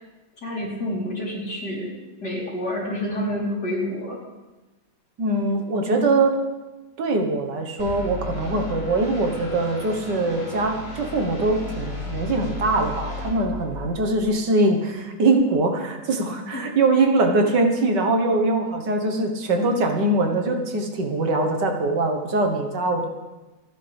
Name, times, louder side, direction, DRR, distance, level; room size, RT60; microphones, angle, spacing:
voice 1, 0.4-1.9 2.2-4.2 16.5-16.6, left 1 dB, 60° left, -5 dB, 4.6 m, -28 dB
voice 2, 5.2-6.4 7.0-23.1, right 2 dB, 70° right, 4 dB, 2.1 m, -22 dB
sound 1, 7.8-14.3, left 3 dB, 80° left, 5.7 m, -34 dB
26.5 x 10.5 x 3.5 m, 1.2 s
omnidirectional pair, 2.0 m